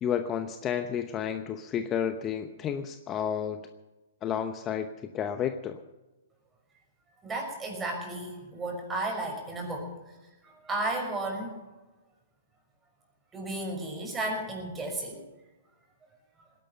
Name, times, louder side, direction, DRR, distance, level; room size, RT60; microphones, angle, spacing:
voice 1, 0.0-3.6 4.2-5.8, left 8 dB, 25° left, 9 dB, 0.9 m, -31 dB
voice 2, 7.2-9.9 10.4-11.6 13.3-15.2, right 2 dB, 15° right, 1 dB, 5.9 m, -33 dB
19.0 x 11.0 x 6.6 m, 1.1 s
hypercardioid pair, 120°, 0 cm